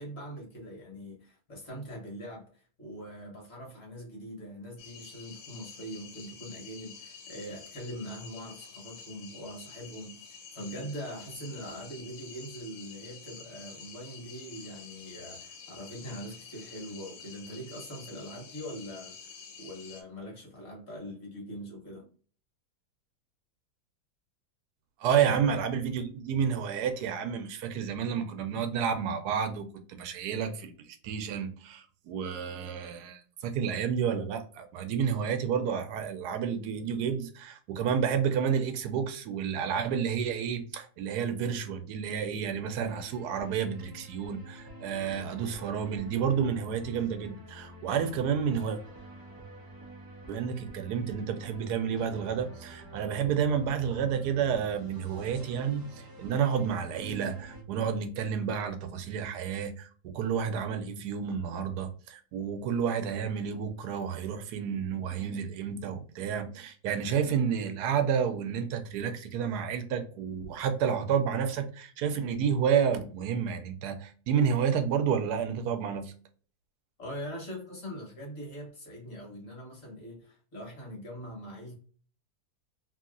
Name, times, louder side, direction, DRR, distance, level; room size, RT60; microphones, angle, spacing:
voice 1, 0.0-22.1 25.2-25.4 77.0-81.7, equal, 45° left, 1.4 m, -42 dB
sound 1, 4.8-20.0, left 5 dB, 75° left, 1.3 m, -48 dB
voice 2, 25.0-48.8 50.3-76.1, right 7 dB, 80° right, 1.1 m, -30 dB
sound 2, 42.8-57.6, right 1 dB, 30° right, 0.3 m, -48 dB
3.0 x 2.7 x 2.5 m
omnidirectional pair, 1.7 m